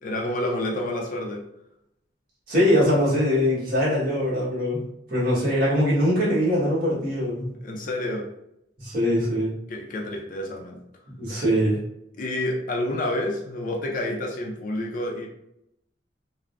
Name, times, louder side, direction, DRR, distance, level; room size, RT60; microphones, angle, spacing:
voice 1, 0.0-1.5 7.6-8.3 9.7-10.8 12.2-15.3, left 1 dB, 45° left, 0 dB, 0.4 m, -29 dB
voice 2, 2.5-7.5 8.8-9.5 11.1-11.8, equal, 55° right, -8 dB, 1.1 m, -22 dB
3.3 x 2.0 x 2.4 m, 0.79 s
head